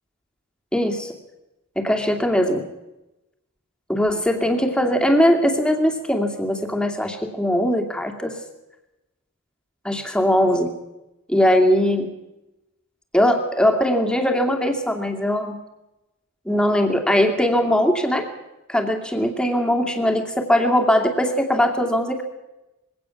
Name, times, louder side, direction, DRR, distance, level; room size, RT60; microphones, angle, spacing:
voice 1, 0.7-1.1 1.8-2.6 3.9-8.4 9.8-10.7 11.3-12.1 13.1-15.6 16.5-18.3 18.7-22.2, equal, 5° left, 3 dB, 2.5 m, -20 dB
22.0 x 17.5 x 7.1 m, 0.96 s
head